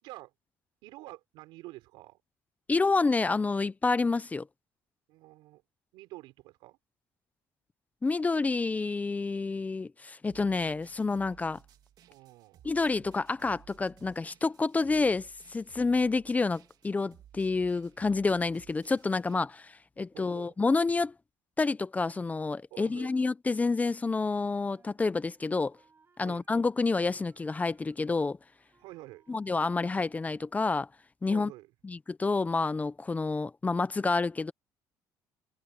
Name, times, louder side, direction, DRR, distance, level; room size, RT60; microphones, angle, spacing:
voice 1, 0.0-0.3 0.8-2.2 5.1-5.6 5.9-6.8 12.1-12.6 20.1-20.5 22.7-23.1 26.2-26.5 28.8-29.2 31.3-31.7, right 19 dB, 90° right, 5.6 m, -48 dB
voice 2, 2.7-4.5 8.0-11.6 12.6-21.1 21.6-25.8 26.2-28.4 29.3-30.9 31.2-31.5 31.8-34.5, left 3 dB, 20° left, 0.7 m, -29 dB
sound 1, 10.3-19.4, right 11 dB, 60° right, 2.6 m, -58 dB
Wind instrument woodwind instrument, 24.6-26.7 27.1-28.1 28.4-30.6, right 5 dB, 30° right, 5.8 m, -66 dB
cardioid pair, 110°, 8 cm